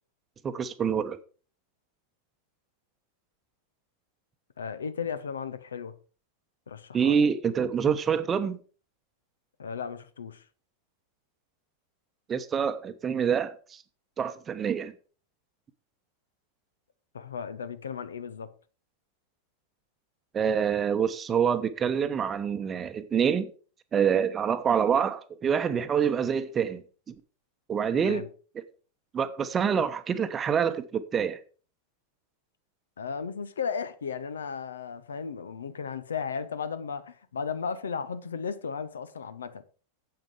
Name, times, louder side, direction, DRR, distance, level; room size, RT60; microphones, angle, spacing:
voice 1, 0.4-1.2 6.9-8.6 12.3-13.8 14.2-14.9 20.3-23.5 23.9-26.8 27.7-28.3 29.1-31.4, right 7 dB, 20° right, 0.9 m, -26 dB
voice 2, 4.6-5.9 6.7-7.2 9.6-10.4 17.1-18.5 27.9-28.3 33.0-39.6, left 6 dB, 70° left, 0.9 m, -35 dB
9.0 x 8.0 x 4.7 m
figure-of-eight pair, 90°, 0 cm